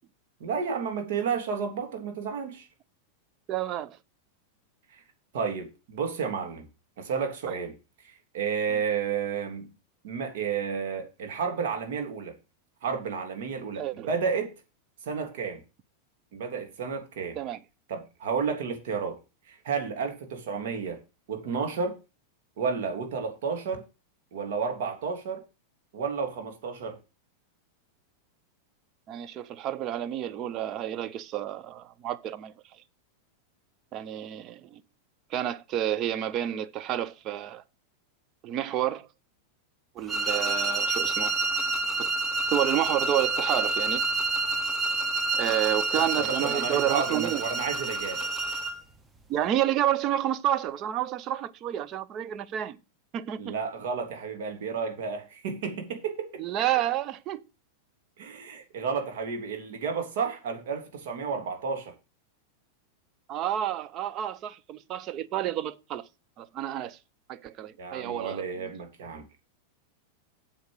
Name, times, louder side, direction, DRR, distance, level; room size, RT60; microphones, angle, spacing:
voice 1, 0.4-2.7 5.3-6.7 7.0-7.7 8.0-9.7 10.0-12.3 12.8-14.5 15.0-15.6 16.3-17.4 17.9-19.2 19.5-21.0 21.3-21.9 22.6-23.8 24.3-25.4 25.9-27.0 45.9-48.3 53.4-56.4 58.2-61.9 67.8-69.2, right 6 dB, 55° right, 3.0 m, -31 dB
voice 2, 3.5-4.0 13.8-14.1 17.4-17.6 29.1-32.5 33.9-34.8 35.3-37.6 38.4-39.1 40.0-41.3 42.0-42.1 42.5-44.0 45.4-47.4 49.3-52.8 53.1-53.5 56.4-57.4 63.3-66.1 66.4-67.0 67.3-68.7, right 11 dB, 35° right, 0.8 m, -30 dB
sound 1, 40.1-48.8, right 3 dB, 10° right, 1.2 m, -28 dB
8.1 x 7.6 x 4.9 m
figure-of-eight pair, 90°, 0 cm